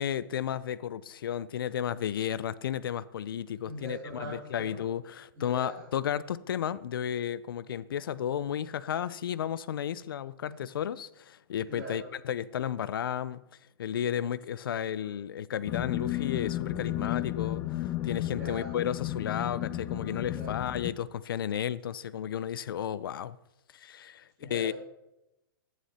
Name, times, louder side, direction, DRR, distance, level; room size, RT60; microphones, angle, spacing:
voice 1, 0.0-13.4 13.8-23.4 23.7-24.7, left 9 dB, 75° left, 0.6 m, -33 dB
voice 2, 3.6-4.8 5.4-5.8 10.4-10.6 11.7-12.1 18.2-18.7 20.3-20.6 24.4-24.7, right 1 dB, 15° right, 2.8 m, -42 dB
sound 1, 15.7-20.9, left 14 dB, 15° left, 0.3 m, -33 dB
11.0 x 9.4 x 4.2 m
hypercardioid pair, 165°, 12 cm